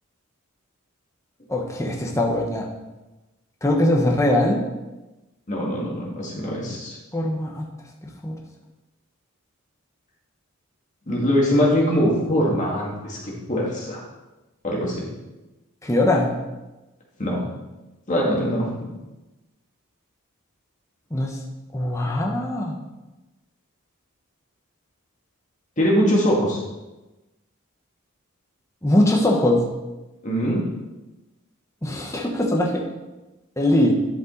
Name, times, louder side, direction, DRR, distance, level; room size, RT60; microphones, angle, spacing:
voice 1, 1.5-2.7 3.6-4.6 7.1-7.7 8.2-8.4 15.8-16.3 21.1-21.4 21.7-22.8 28.8-29.6 31.8-32.9 33.6-33.9, left 1 dB, 15° left, -1 dB, 1.0 m, -21 dB
voice 2, 5.5-7.0 11.1-14.0 14.6-15.1 17.2-17.4 18.1-18.7 25.8-26.6 30.2-30.7, equal, 35° left, -3 dB, 2.0 m, -22 dB
11.0 x 5.4 x 3.9 m, 1.1 s
head